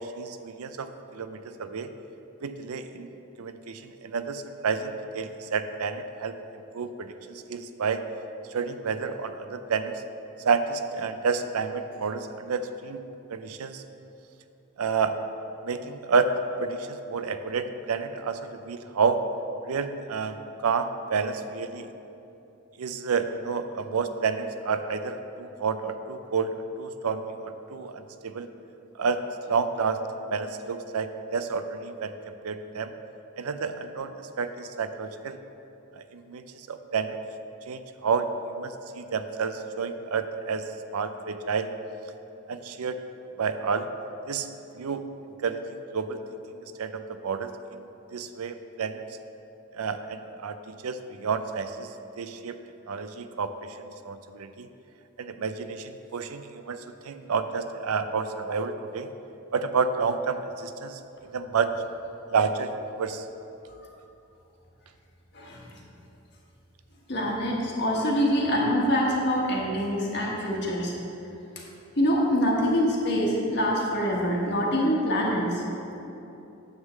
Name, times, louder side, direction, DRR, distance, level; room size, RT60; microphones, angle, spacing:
voice 1, 0.2-1.9 2.4-3.1 3.4-6.3 6.7-7.1 7.5-8.0 8.5-10.0 10.4-13.0 13.3-13.8 14.8-15.2 15.6-16.3 16.6-18.4 18.6-19.2 19.6-20.4 20.6-21.9 22.8-28.5 29.0-29.2 29.5-32.1 32.4-32.9 33.4-35.4 36.0-37.2 37.7-38.3 38.6-40.7 40.9-41.7 42.5-43.0 43.4-43.9 44.3-44.5 44.8-45.0 45.4-45.6 45.9-46.2 46.8-47.5 48.1-49.0 49.7-51.9 52.2-52.6 52.9-54.7 55.2-59.1 59.5-61.0 61.3-61.7 62.3-62.7 63.0-63.2, right 5 dB, 90° right, 9 dB, 0.5 m, -30 dB
voice 2, 65.3-65.8 67.1-70.9 71.5-71.6 72.0-75.6, equal, 50° left, -3 dB, 1.3 m, -25 dB
9.6 x 3.7 x 7.2 m, 2.9 s
head